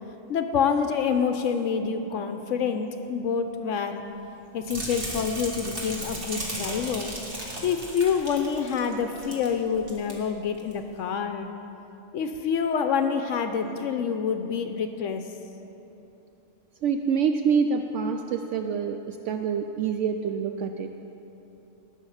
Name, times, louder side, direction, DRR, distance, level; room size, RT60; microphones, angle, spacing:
voice 1, 0.3-4.0 4.5-7.1 7.6-11.5 12.1-15.2, left 6 dB, 75° left, 7 dB, 0.9 m, -27 dB
sound 1, 4.6-9.5 9.8-10.1 10.6-10.7, right 1 dB, 45° right, 2.2 m, -35 dB
voice 2, 16.8-20.9, right 6 dB, 70° right, 6 dB, 0.8 m, -26 dB
18.5 x 6.5 x 5.6 m, 3.0 s
omnidirectional pair, 1.3 m